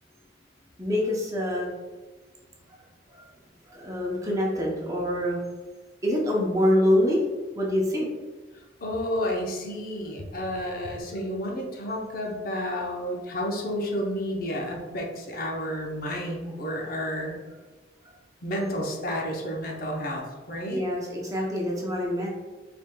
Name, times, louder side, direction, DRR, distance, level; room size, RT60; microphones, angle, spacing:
voice 1, 0.8-1.7 3.1-3.2 3.7-5.4 6.0-7.2 7.6-8.1 20.7-22.3, left 1 dB, 20° right, -3 dB, 0.7 m, -25 dB
voice 2, 8.8-17.4 18.4-20.8, equal, 55° left, 0 dB, 0.7 m, -31 dB
4.6 x 3.4 x 2.2 m, 1.2 s
head